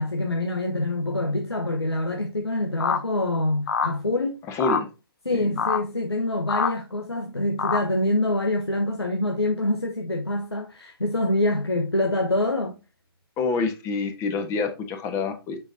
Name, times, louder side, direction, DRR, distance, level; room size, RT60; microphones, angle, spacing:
voice 1, 0.0-4.4 5.2-12.7, left 1 dB, 85° left, 1.1 m, -25 dB
sound 1, 2.8-3.0 3.7-3.9 4.6-4.8 5.6-5.8 6.5-6.7 7.6-7.8, left 6 dB, 55° left, 0.8 m, -24 dB
voice 2, 4.5-4.9 13.4-15.6, left 4 dB, 20° left, 1.2 m, -27 dB
6.9 x 6.0 x 2.7 m
figure-of-eight pair, 125°, 13 cm